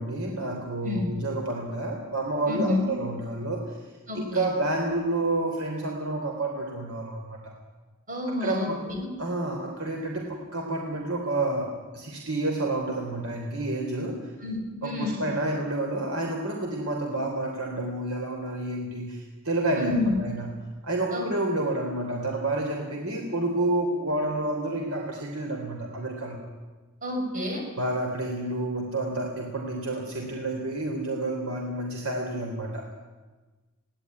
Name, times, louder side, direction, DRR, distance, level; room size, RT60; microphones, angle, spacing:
voice 1, 0.0-3.6 4.1-7.5 8.4-8.8 9.2-14.2 14.8-19.9 20.2-20.5 20.8-26.4 27.8-32.8, right 2 dB, 90° right, 1 dB, 3.7 m, -29 dB
voice 2, 2.5-2.9 4.1-4.5 8.1-9.1 14.4-15.2 19.7-20.2 21.1-21.3 27.0-27.6, left 2 dB, 40° right, 2 dB, 6.4 m, -29 dB
22.0 x 17.5 x 9.8 m, 1.3 s
head